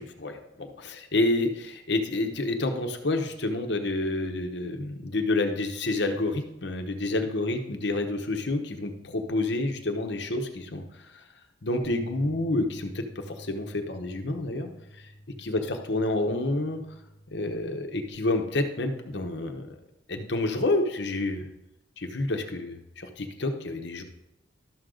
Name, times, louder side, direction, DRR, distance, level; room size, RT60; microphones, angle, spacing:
voice 1, 0.0-11.2 11.6-14.7 15.0-15.1 15.4-16.8 17.3-19.7 20.1-21.5 22.0-24.0, left 2 dB, 60° left, 5 dB, 1.0 m, -29 dB
Bass guitar, 11.8-18.1, equal, 5° right, 0.7 m, -49 dB
12.0 x 6.4 x 3.8 m, 0.89 s
head